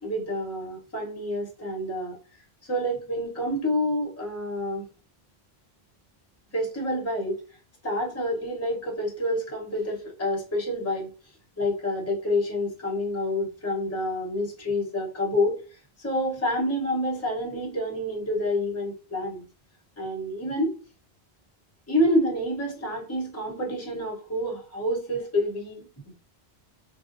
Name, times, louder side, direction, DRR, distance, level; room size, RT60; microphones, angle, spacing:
voice 1, 0.0-2.2 2.7-4.8 6.5-7.4 7.8-11.1 11.6-15.6 16.0-19.4 20.0-20.7 21.9-25.9, left 1 dB, 15° left, -1 dB, 0.7 m, -28 dB
3.7 x 2.1 x 2.5 m, 0.37 s
omnidirectional pair, 1.1 m